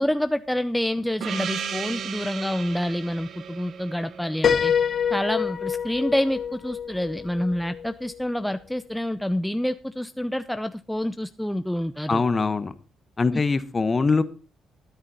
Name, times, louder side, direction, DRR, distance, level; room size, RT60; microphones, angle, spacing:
voice 1, 0.0-4.7 5.1-12.2, left 1 dB, 5° left, 10 dB, 0.5 m, -27 dB
Gong, 1.2-5.5, right 7 dB, 65° right, 1.2 m, -35 dB
Piano, 4.4-8.2, left 7 dB, 50° left, 1.0 m, -26 dB
voice 2, 12.1-12.7 13.2-14.2, left 4 dB, 30° left, 13 dB, 1.1 m, -22 dB
13.0 x 9.8 x 4.2 m, 0.36 s
cardioid pair, 90°, 0 cm